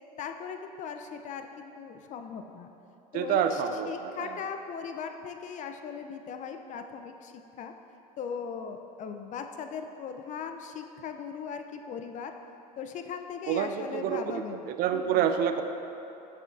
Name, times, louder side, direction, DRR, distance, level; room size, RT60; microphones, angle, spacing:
voice 1, 0.2-2.7 3.1-7.7 8.2-12.3 12.8-14.7 14.9-15.3, left 6 dB, 35° left, 6 dB, 0.4 m, -39 dB
voice 2, 3.1-4.4 13.5-15.6, right 8 dB, 45° right, 8 dB, 0.4 m, -28 dB
7.1 x 5.7 x 2.5 m, 2.9 s
hypercardioid pair, 85°, 21 cm